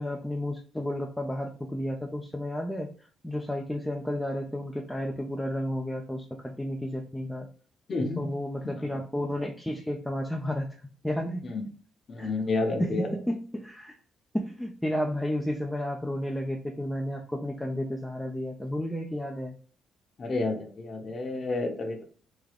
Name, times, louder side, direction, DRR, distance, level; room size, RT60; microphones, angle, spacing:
voice 1, 0.0-2.9 3.2-7.5 8.2-10.8 11.0-11.5 12.2-12.3 12.8-13.9 14.3-19.6, left 1 dB, 5° left, 1 dB, 0.5 m, -32 dB
voice 2, 7.9-8.3 8.8-8.9 11.4-11.6 12.1-13.1 20.2-22.0, left 3 dB, 45° left, 3 dB, 0.9 m, -30 dB
3.6 x 2.2 x 3.4 m, 0.41 s
cardioid pair, 90°, 0 cm